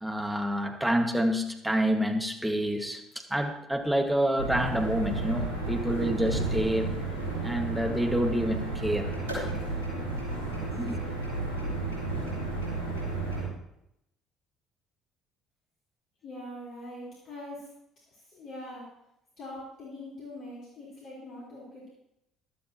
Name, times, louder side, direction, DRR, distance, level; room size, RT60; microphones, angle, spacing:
voice 1, 0.0-6.9 7.4-9.2 10.7-11.0, right 1 dB, 10° right, 1.7 m, -28 dB
sound 1, 4.4-13.4, right 2 dB, 80° right, 4.6 m, -32 dB
voice 2, 16.2-17.7 18.1-18.9 19.4-21.9, left 1 dB, 50° left, 4.0 m, -43 dB
15.5 x 11.5 x 2.9 m
figure-of-eight pair, 55°, 0 cm